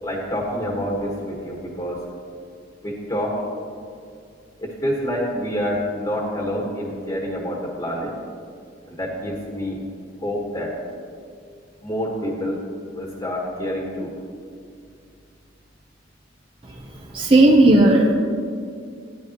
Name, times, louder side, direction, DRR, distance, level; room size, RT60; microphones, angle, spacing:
voice 1, 0.0-2.0 2.8-3.4 4.6-8.1 8.9-9.8 10.2-10.7 11.8-12.6 12.9-14.1, equal, 25° left, -3 dB, 1.5 m, -27 dB
voice 2, 17.1-18.1, right 2 dB, 30° right, -2 dB, 0.7 m, -14 dB
14.5 x 10.0 x 3.0 m, 2.3 s
head